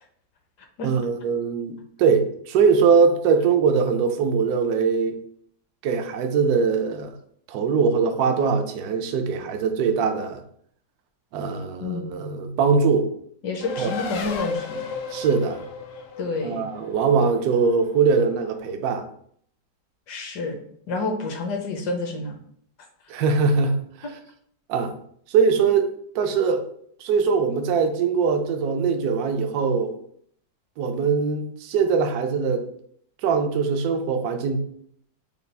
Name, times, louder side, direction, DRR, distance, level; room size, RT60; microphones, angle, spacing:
voice 1, 0.8-5.2 5.8-7.2 7.5-10.4 11.3-13.1 13.8-13.9 15.1-15.6 16.4-19.0 23.1-23.8 24.7-24.9 25.3-26.6 27.0-29.9 30.8-32.6 33.2-34.6, right 5 dB, 70° right, 5 dB, 1.0 m, -22 dB
voice 2, 11.8-12.1 13.4-14.8 16.2-16.6 20.1-20.6 20.9-22.4, left 3 dB, 70° left, 4 dB, 1.3 m, -29 dB
Race car auto racing, 13.6-18.5, left 4 dB, 85° left, 0.6 m, -35 dB
6.8 x 2.3 x 3.3 m, 0.64 s
omnidirectional pair, 2.0 m